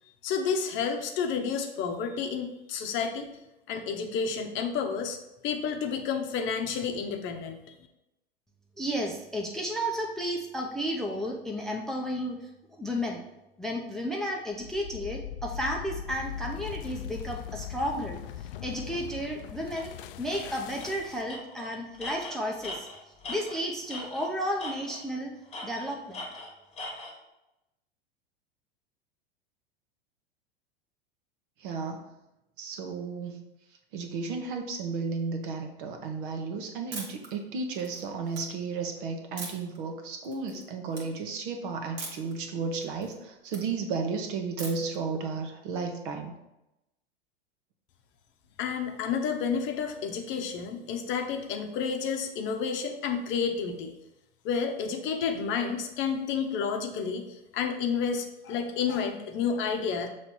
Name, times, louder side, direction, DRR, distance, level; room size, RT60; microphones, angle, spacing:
voice 1, 0.2-3.3 3.7-5.2 5.4-7.7 48.6-53.9 54.4-60.1, left 6 dB, 40° left, 4 dB, 0.8 m, -30 dB
voice 2, 8.8-12.4 12.8-13.2 13.6-18.2 18.6-22.9 23.3-25.3 25.6-26.2, equal, ahead, 0 dB, 0.6 m, -33 dB
sound 1, 14.5-21.4, left 10 dB, 60° left, 0.4 m, -40 dB
Tools, 19.8-19.9 20.3-20.4 20.8-21.0 21.3-24.3 24.6-25.1 25.5-27.1, left 2 dB, 20° left, 1.3 m, -40 dB
voice 3, 31.6-32.0 32.6-33.4 33.9-46.3, right 4 dB, 55° right, 4 dB, 1.1 m, -33 dB
sound 2, 36.9-37.3 37.7-38.4 39.4-39.8 40.2-40.6 40.9-41.1 42.0-42.3 42.7-43.6 44.6-45.0, right 3 dB, 80° right, 1.6 m, -40 dB
6.7 x 3.2 x 4.4 m, 0.92 s
hypercardioid pair, 90°, 31 cm